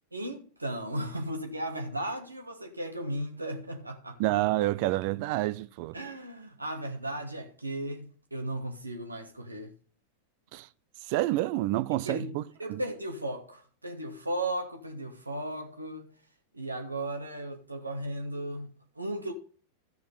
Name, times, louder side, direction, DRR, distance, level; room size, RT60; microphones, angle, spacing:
voice 1, 0.1-4.2 5.9-9.7 12.0-16.1 16.5-19.3, right 1 dB, 85° right, 1.5 m, -36 dB
voice 2, 4.2-5.9 10.5-10.7 11.1-12.4 12.7-12.8, right 16 dB, 45° right, 0.5 m, -28 dB
13.5 x 4.9 x 5.3 m
figure-of-eight pair, 90°, 0 cm